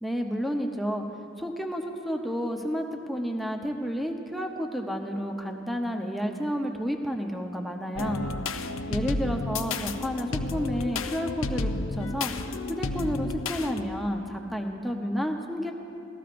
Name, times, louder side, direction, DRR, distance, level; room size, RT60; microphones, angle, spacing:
voice 1, 0.0-1.0 1.4-8.2 8.9-12.3 12.7-15.7, equal, ahead, 2 dB, 0.7 m, -31 dB
sound 1, 8.0-13.9, left 3 dB, 75° left, 0.6 m, -31 dB
19.0 x 14.0 x 2.5 m, 2.8 s
head